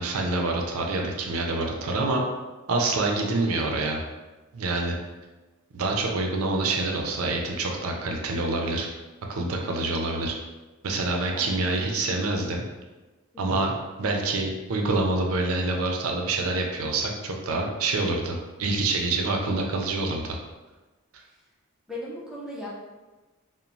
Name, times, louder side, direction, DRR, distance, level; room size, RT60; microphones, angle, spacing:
voice 1, 0.0-2.2 2.7-4.0 4.5-4.9 5.7-8.9 9.3-10.4 10.8-12.6 13.4-20.4, right 2 dB, 75° right, 1 dB, 0.4 m, -26 dB
voice 2, 11.3-11.9 13.3-13.7 21.2-21.3 21.9-22.7, left 1 dB, 5° right, -6 dB, 0.5 m, -38 dB
2.9 x 2.0 x 2.6 m, 1.2 s
head